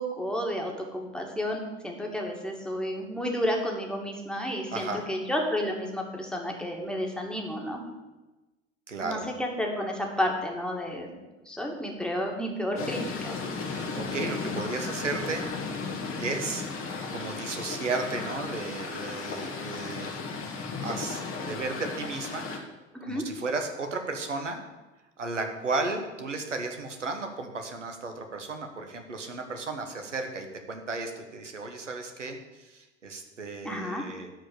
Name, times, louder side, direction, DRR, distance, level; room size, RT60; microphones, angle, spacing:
voice 1, 0.0-7.8 9.0-11.1 11.5-13.4 22.9-23.2 33.6-34.0, equal, ahead, 0 dB, 2.5 m, -31 dB
voice 2, 4.7-5.0 8.9-9.3 13.7-15.4 16.2-16.6 17.1-20.1 20.4-20.5 20.8-22.5 23.0-24.6 25.2-34.4, right 3 dB, 85° right, 5 dB, 1.4 m, -34 dB
sound 1, 12.8-22.6, left 4 dB, 35° left, 2.0 m, -35 dB
12.0 x 5.0 x 8.5 m, 1.1 s
figure-of-eight pair, 70°, 36 cm